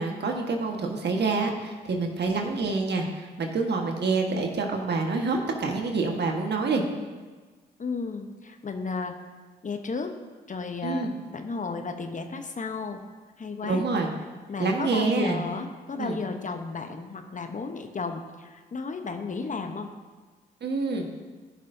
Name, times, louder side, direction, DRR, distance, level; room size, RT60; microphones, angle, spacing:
voice 1, 0.0-6.8 10.8-11.1 13.6-14.1 14.6-15.4 16.0-16.2 20.6-21.1, right 3 dB, 60° right, 2 dB, 1.5 m, -27 dB
voice 2, 7.8-9.2 9.6-10.1 10.5-13.0 13.4-13.9 14.5-19.9, left 4 dB, 40° left, 6 dB, 1.0 m, -33 dB
14.5 x 6.0 x 2.7 m, 1.3 s
supercardioid pair, 45°, 20 cm